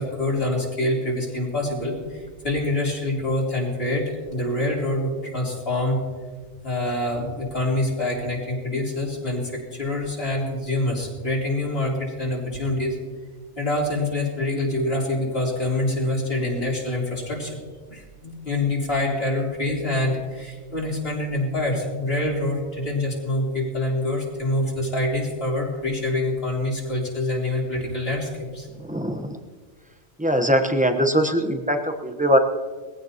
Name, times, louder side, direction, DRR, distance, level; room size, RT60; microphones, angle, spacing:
voice 1, 0.0-6.0 6.6-13.0 13.6-17.6 17.9-28.7, left 1 dB, 60° left, -3 dB, 3.8 m, -26 dB
voice 2, 28.8-29.4 30.2-32.4, equal, 5° right, 5 dB, 0.9 m, -21 dB
21.5 x 15.5 x 2.9 m, 1.5 s
omnidirectional pair, 1.2 m